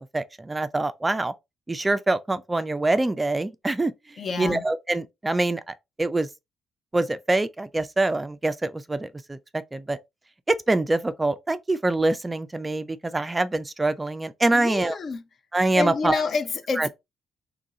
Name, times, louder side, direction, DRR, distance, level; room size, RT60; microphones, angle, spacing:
voice 1, 0.0-1.3 1.7-3.9 4.4-6.3 6.9-10.0 10.5-14.9 15.5-16.2 16.8-16.9, right 2 dB, 20° right, 0.3 m, -25 dB
voice 2, 4.2-4.6 14.5-15.2 15.7-16.9, left 4 dB, 50° left, 0.6 m, -28 dB
3.0 x 2.6 x 3.7 m
cardioid pair, 90°, 0 cm